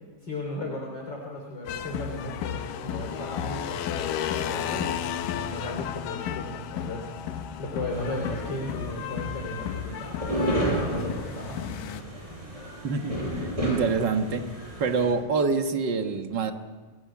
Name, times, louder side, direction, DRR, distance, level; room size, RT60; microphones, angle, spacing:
voice 1, 0.2-7.1 7.6-11.6, left 2 dB, 35° left, 0 dB, 3.7 m, -36 dB
sound 1, 1.7-12.0, left 9 dB, 80° left, 2.7 m, -33 dB
sound 2, 7.9-15.1, right 1 dB, 10° right, 7.5 m, -32 dB
voice 2, 12.8-14.4 14.8-16.5, right 4 dB, 45° right, 6 dB, 1.5 m, -26 dB
29.0 x 18.5 x 8.6 m, 1.4 s
omnidirectional pair, 3.8 m